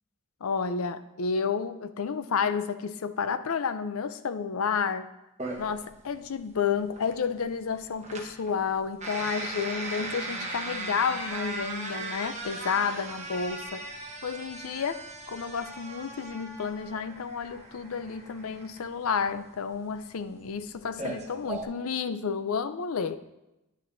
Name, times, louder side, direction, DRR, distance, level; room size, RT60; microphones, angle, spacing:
voice 1, 0.4-5.1 5.6-13.9 14.2-23.2, left 6 dB, 90° left, 0.5 m, -31 dB
sound 1, 5.4-21.6, right 2 dB, 30° right, 1.2 m, -38 dB
13.0 x 9.4 x 2.6 m
head